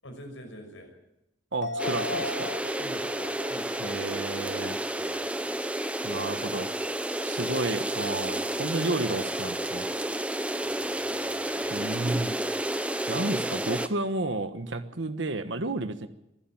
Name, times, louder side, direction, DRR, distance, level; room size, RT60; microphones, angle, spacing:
voice 1, 0.0-0.9 2.8-5.6 10.6-11.9, equal, 80° left, 4 dB, 6.2 m, -47 dB
voice 2, 1.5-2.5 3.8-4.8 6.0-6.7 7.2-9.9 11.7-12.4 13.1-16.1, right 2 dB, 70° right, 8 dB, 1.2 m, -31 dB
sound 1, 1.6-5.3 5.7-5.8, left 2 dB, 60° left, 3.8 m, -38 dB
sound 2, 1.8-13.9, right 1 dB, 5° right, 0.8 m, -31 dB
24.0 x 11.5 x 9.3 m, 0.88 s
head